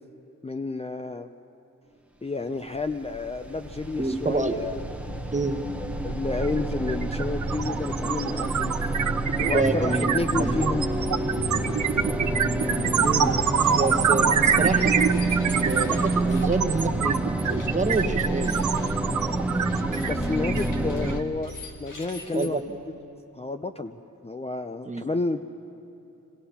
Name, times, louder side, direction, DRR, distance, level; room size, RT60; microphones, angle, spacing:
voice 1, 0.4-1.3 2.2-4.8 6.0-8.7 9.4-10.9 20.0-21.5 21.8-22.6 23.3-25.4, left 3 dB, 20° left, 7 dB, 0.5 m, -30 dB
sound 1, 2.7-21.2, right 2 dB, 5° right, 1.0 m, -28 dB
voice 2, 4.0-4.6 5.3-5.6 9.5-10.5 13.0-13.3 13.7-14.9 15.5-18.6 22.3-22.8 24.8-25.0, right 3 dB, 20° right, 6 dB, 1.1 m, -27 dB
sound 2, 6.4-6.6 6.9-21.2, right 7 dB, 65° right, 0.8 m, -25 dB
sound 3, 13.4-13.8 14.6-16.6 17.4-19.0 19.7-22.5, left 3 dB, 70° left, 2.3 m, -46 dB
25.0 x 18.0 x 5.7 m, 3.0 s
wide cardioid pair, 90°, 32 cm